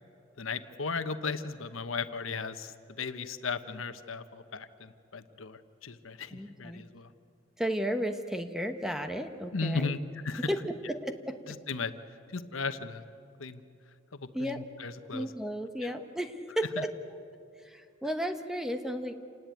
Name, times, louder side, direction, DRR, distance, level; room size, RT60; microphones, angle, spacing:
voice 1, 0.4-2.7 3.0-7.1 9.5-10.5 11.5-11.9 12.3-13.0 13.4-13.6 14.2-15.3 15.8-15.9 16.8-16.9, left 4 dB, 85° left, 10 dB, 1.1 m, -36 dB
voice 2, 6.3-6.8 7.6-10.0 10.5-11.4 14.3-14.6 15.1-16.9 17.6-19.1, equal, ahead, 7 dB, 1.1 m, -33 dB
28.0 x 19.0 x 9.1 m, 2.5 s
head